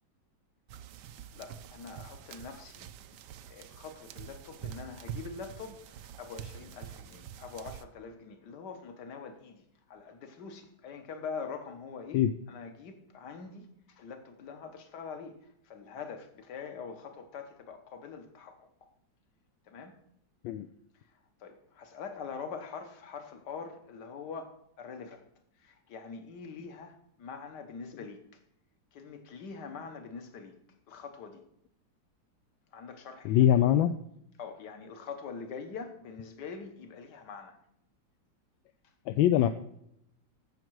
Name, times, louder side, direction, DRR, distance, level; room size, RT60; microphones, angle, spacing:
sound 1, 0.7-7.8, right 9 dB, 70° right, 1.2 m, -46 dB
voice 1, 1.3-2.9 3.5-18.9 19.7-20.0 21.1-25.3 25.6-28.4 28.9-30.5 30.9-31.4 32.7-33.5 34.4-37.6, left 5 dB, 60° left, 1.7 m, -44 dB
voice 2, 33.2-34.0 39.1-39.5, left 11 dB, 80° left, 1.3 m, -23 dB
15.0 x 6.5 x 4.7 m
omnidirectional pair, 2.1 m